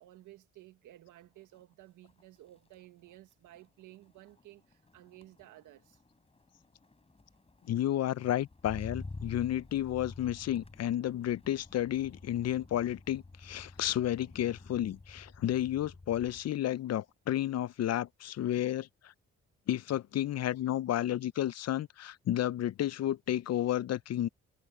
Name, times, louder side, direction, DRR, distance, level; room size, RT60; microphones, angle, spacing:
voice 1, 0.0-6.0, right 15 dB, 85° right, 1.7 m, -55 dB
Motor vehicle (road), 1.4-1.7 2.1-16.5 16.9-17.3, left 3 dB, 20° left, 3.9 m, -50 dB
voice 2, 7.7-19.1 19.7-24.3, left 12 dB, 55° left, 0.7 m, -32 dB
cardioid pair, 90°, 30 cm